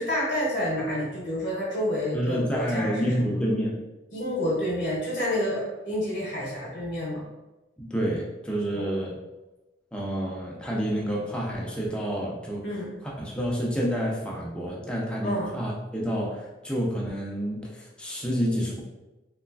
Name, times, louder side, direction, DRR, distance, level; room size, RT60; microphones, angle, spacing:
voice 1, 0.0-3.3 4.1-7.3 8.7-9.1 12.6-12.9 15.2-15.5, equal, 50° left, -7 dB, 0.8 m, -29 dB
voice 2, 2.1-3.8 7.8-9.2 9.9-12.6 13.2-18.8, equal, 5° left, -3 dB, 0.4 m, -29 dB
2.9 x 2.3 x 2.3 m, 1.1 s
head